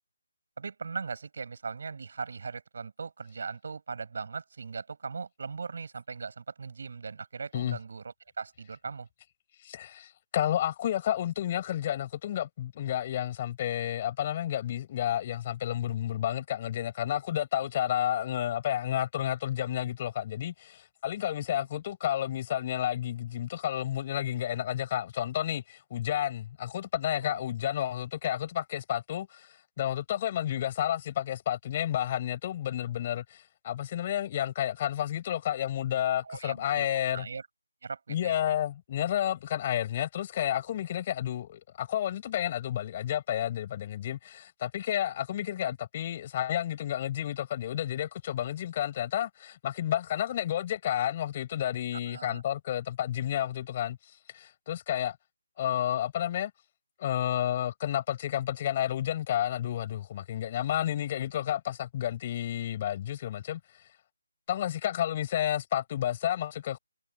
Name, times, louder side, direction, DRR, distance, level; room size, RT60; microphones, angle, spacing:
voice 1, 0.6-9.1 21.5-21.7 27.2-27.4 36.2-36.9 37.1-37.5 37.8-38.5 52.1-52.4, right 5 dB, 60° right, 7.6 m, -39 dB
voice 2, 9.6-29.5 29.8-37.3 38.1-54.0 54.3-55.2 55.6-56.5 57.0-63.6 64.5-66.8, left 11 dB, 30° left, 5.4 m, -31 dB
figure-of-eight pair, 155°, 0 cm